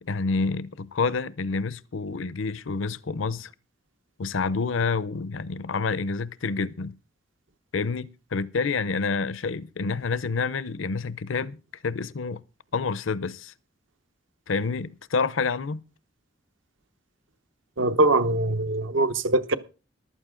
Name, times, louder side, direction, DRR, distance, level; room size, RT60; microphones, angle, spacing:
voice 1, 0.0-3.5 4.2-7.0 7.7-11.6 11.8-12.4 12.7-13.5 14.5-15.8, left 4 dB, 80° left, 0.6 m, -28 dB
voice 2, 17.8-19.6, right 2 dB, 75° right, 1.0 m, -22 dB
14.5 x 12.0 x 3.7 m
head